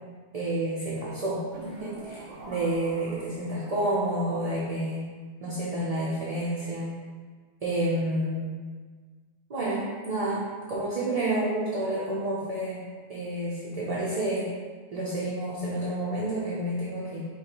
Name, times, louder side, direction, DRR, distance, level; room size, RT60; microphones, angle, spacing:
voice 1, 0.3-1.4 1.8-5.0 5.4-6.9 7.6-8.4 9.5-12.8 13.1-14.4 14.9-17.2, right 1 dB, 45° right, -7 dB, 0.5 m, -29 dB
sound 1, 1.5-3.9, right 1 dB, 85° right, 1.0 m, -43 dB
5.0 x 2.4 x 2.9 m, 1.5 s
omnidirectional pair, 1.3 m